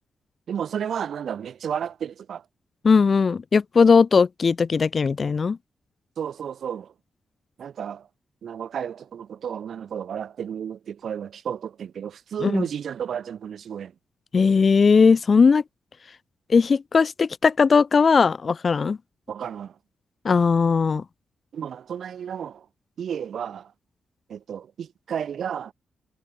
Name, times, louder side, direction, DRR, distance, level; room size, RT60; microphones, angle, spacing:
voice 1, 0.5-2.4 6.2-6.9 7.6-8.1 8.4-13.9 19.3-19.7 21.5-22.7 23.0-23.7 24.3-25.7, right 8 dB, 60° right, 0.3 m, -32 dB
voice 2, 2.8-5.6 12.4-12.6 14.3-15.6 16.5-19.0 20.2-21.0, left 5 dB, 35° left, 0.3 m, -18 dB
wide cardioid pair, 165°, 0 cm